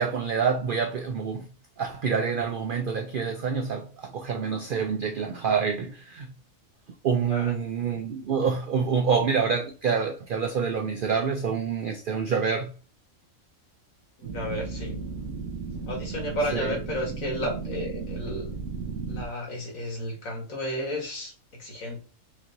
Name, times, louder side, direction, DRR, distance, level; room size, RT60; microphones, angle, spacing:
voice 1, 0.0-1.5 1.8-6.3 7.0-12.7 16.5-16.8, right 6 dB, 85° right, 0.4 m, -27 dB
voice 2, 14.2-15.0 15.9-18.5 19.1-21.3 21.6-22.0, left 1 dB, 70° left, 1.9 m, -32 dB
sound 1, 14.2-19.3, right 5 dB, 70° right, 1.2 m, -35 dB
5.2 x 3.0 x 2.6 m
omnidirectional pair, 1.4 m